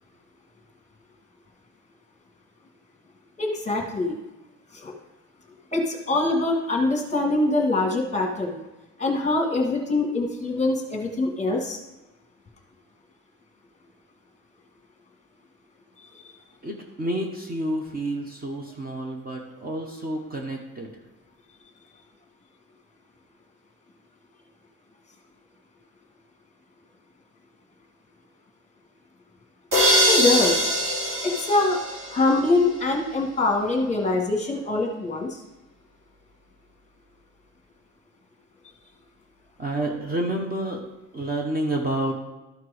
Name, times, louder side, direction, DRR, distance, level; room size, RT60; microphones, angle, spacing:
voice 1, 3.4-4.2 4.7-4.9 5.7-8.6 9.0-11.8 30.1-30.7 31.2-31.8 32.1-35.4, left 2 dB, 20° left, 1 dB, 1.5 m, -24 dB
voice 2, 16.6-20.9 39.6-40.9 41.1-42.1, right 1 dB, 25° right, 1 dB, 0.9 m, -29 dB
sound 1, 29.7-32.5, equal, 50° right, 2.8 m, -22 dB
13.0 x 4.4 x 5.0 m, 1.1 s
cardioid pair, 155°, 34 cm